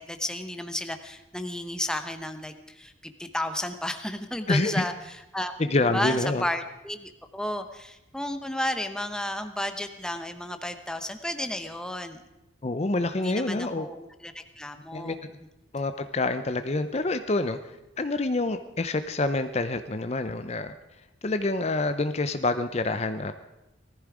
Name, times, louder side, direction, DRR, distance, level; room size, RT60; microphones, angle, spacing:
voice 1, 0.0-5.5 5.9-12.2 13.1-15.2, left 1 dB, 5° left, 8 dB, 0.9 m, -33 dB
voice 2, 4.5-4.8 5.6-6.4 12.6-13.9 14.9-15.2 15.7-20.7 21.2-23.3, left 2 dB, 35° left, 10 dB, 0.6 m, -27 dB
19.5 x 14.5 x 4.9 m, 0.97 s
head